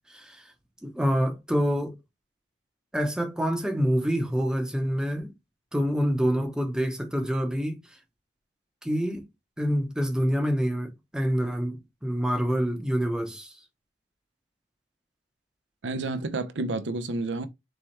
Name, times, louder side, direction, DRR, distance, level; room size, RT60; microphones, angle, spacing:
voice 1, 0.1-0.4 0.8-2.0 2.9-5.3 5.7-7.8 8.8-9.3 9.6-13.5, equal, 5° right, 0.8 m, -26 dB
voice 2, 15.8-17.5, right 2 dB, 85° right, 0.6 m, -30 dB
4.3 x 3.4 x 3.1 m
head